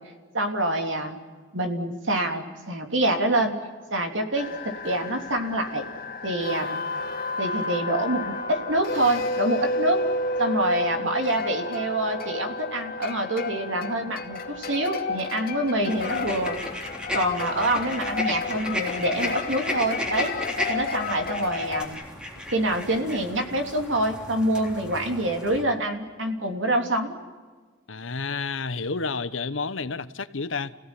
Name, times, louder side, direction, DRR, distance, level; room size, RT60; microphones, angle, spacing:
voice 1, 0.3-1.2 1.5-3.6 3.9-5.9 6.2-6.8 7.4-10.0 10.4-16.6 17.1-20.3 20.7-22.0 22.5-27.1, right 1 dB, 70° right, 5 dB, 3.2 m, -26 dB
sound 1, 4.3-21.8, left 3 dB, 50° left, 2.4 m, -31 dB
sound 2, 15.9-25.6, left 1 dB, 5° right, 3.6 m, -35 dB
voice 2, 27.9-30.7, left 4 dB, 75° left, 14 dB, 1.1 m, -30 dB
30.0 x 17.0 x 9.9 m, 1.4 s
head